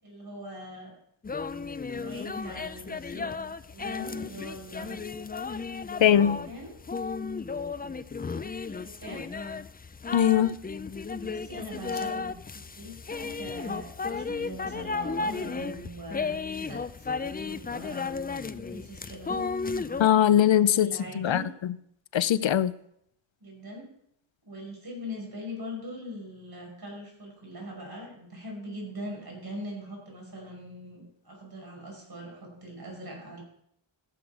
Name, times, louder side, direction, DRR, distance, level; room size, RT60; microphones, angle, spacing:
voice 1, 0.0-0.9 1.9-3.3 3.7-5.0 6.5-6.8 8.7-9.3 11.1-16.4 16.7-17.1 17.3-18.1 18.5-19.4 20.6-21.5 23.4-23.9 24.5-33.4, equal, 50° right, 5.5 m, -41 dB
sound 1, 1.2-20.1, left 4 dB, 20° left, 0.3 m, -34 dB
voice 2, 6.0-6.4 10.1-10.6 20.0-20.9 21.2-21.4 22.1-22.7, left 10 dB, 70° left, 0.5 m, -21 dB
14.5 x 7.9 x 4.7 m
wide cardioid pair, 80°, 48 cm